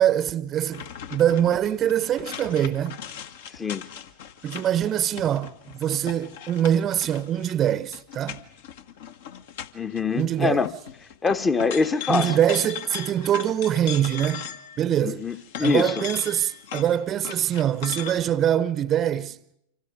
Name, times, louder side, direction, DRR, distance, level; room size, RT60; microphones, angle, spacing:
voice 1, 0.0-3.0 4.4-8.4 10.1-10.7 12.1-14.5 14.8-15.3 15.6-19.4, right 10 dB, 30° right, 0.9 m, -24 dB
sound 1, 0.7-10.3 10.5-14.8 15.2-18.2, left 8 dB, 55° left, 1.5 m, -38 dB
voice 2, 9.7-10.7 11.2-12.3 15.0-15.9, left 4 dB, 15° left, 1.1 m, -24 dB
30.0 x 26.0 x 5.1 m
figure-of-eight pair, 90°, 0 cm